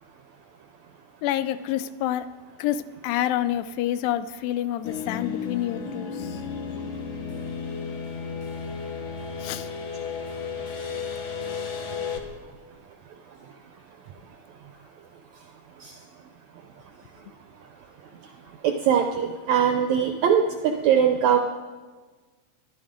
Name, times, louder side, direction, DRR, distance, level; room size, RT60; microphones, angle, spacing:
voice 1, 1.2-2.3 2.6-6.4 9.4-9.7, left 12 dB, 90° left, 13 dB, 2.4 m, -28 dB
sound 1, 4.8-12.2, left 6 dB, 65° left, 1.2 m, -33 dB
voice 2, 18.6-21.4, right 8 dB, 80° right, 5 dB, 1.6 m, -21 dB
21.5 x 12.0 x 3.7 m, 1.4 s
omnidirectional pair, 4.0 m